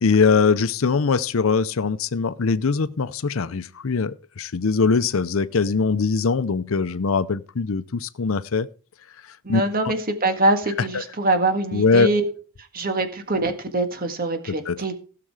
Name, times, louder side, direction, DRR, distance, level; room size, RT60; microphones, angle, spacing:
voice 1, 0.0-8.7 9.5-9.6 11.7-12.1 14.5-14.8, left 4 dB, 75° left, 0.6 m, -21 dB
voice 2, 9.4-12.2 12.7-14.9, right 2 dB, 45° right, 1.8 m, -23 dB
16.0 x 6.7 x 4.8 m
head